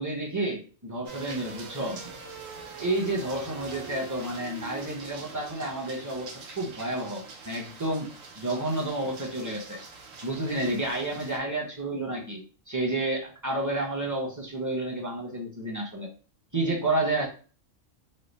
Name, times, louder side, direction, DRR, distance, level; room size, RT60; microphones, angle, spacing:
voice 1, 0.0-2.0 2.8-8.1 8.4-9.8 10.2-16.1 16.5-17.3, right 2 dB, 20° right, -1 dB, 0.6 m, -30 dB
sound 1, 1.1-11.4, right 5 dB, 80° right, 1.1 m, -44 dB
3.2 x 2.0 x 3.9 m, 0.39 s
omnidirectional pair, 1.4 m